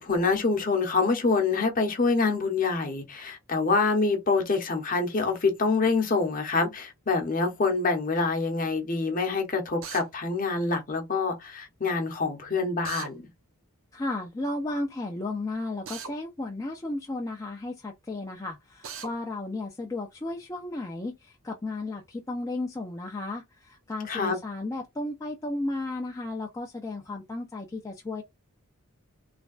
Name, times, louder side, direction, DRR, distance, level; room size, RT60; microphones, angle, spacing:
voice 1, 0.0-13.3 24.1-24.4, left 4 dB, 40° left, 0.8 m, -26 dB
Drill, 9.8-10.1 12.8-13.1 15.9-16.1 18.8-19.1, right 6 dB, 60° right, 0.6 m, -38 dB
voice 2, 13.9-28.2, left 2 dB, 15° left, 0.4 m, -34 dB
3.2 x 2.2 x 2.4 m
head